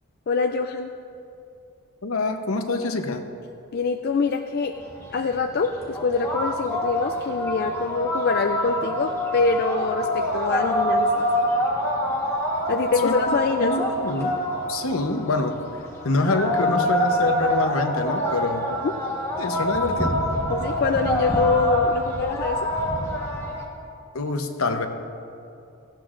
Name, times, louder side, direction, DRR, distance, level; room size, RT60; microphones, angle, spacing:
voice 1, 0.3-0.9 3.7-4.7 5.1-11.3 12.7-13.7 18.8-18.9 20.5-22.6, left 4 dB, 45° left, 5 dB, 0.3 m, -25 dB
voice 2, 2.0-3.2 13.0-13.2 13.6-14.4 14.7-15.6 16.0-18.7 19.4-20.2 24.1-24.9, left 3 dB, 70° left, 6 dB, 0.9 m, -25 dB
sound 1, 4.8-23.6, equal, 10° left, 1.3 m, -26 dB
17.5 x 15.0 x 2.5 m, 2.6 s
head